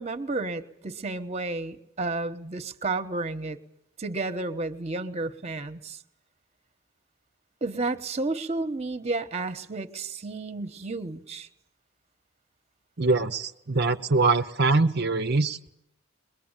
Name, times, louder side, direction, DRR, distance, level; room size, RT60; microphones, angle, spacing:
voice 1, 0.0-3.6 4.0-6.0 7.6-11.5, right 3 dB, 30° right, 9 dB, 1.3 m, -31 dB
voice 2, 13.0-15.7, right 3 dB, 50° right, 8 dB, 0.9 m, -23 dB
22.5 x 21.5 x 9.1 m, 0.76 s
head